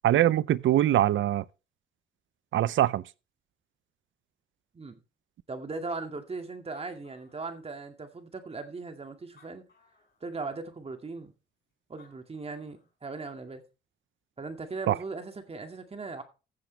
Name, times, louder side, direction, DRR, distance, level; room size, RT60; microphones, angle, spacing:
voice 1, 0.0-1.4 2.5-3.0 14.9-15.0, right 13 dB, 75° right, 0.6 m, -23 dB
voice 2, 5.5-9.6 10.2-11.3 11.9-13.6 14.4-16.2, right 3 dB, 30° right, 2.2 m, -38 dB
Animal, 6.3-6.4 6.5-8.0 8.6-8.7 9.2-10.2 11.7-11.8 12.0-12.9, left 4 dB, 55° left, 4.9 m, -62 dB
15.0 x 7.2 x 3.3 m
cardioid pair, 100°, 20 cm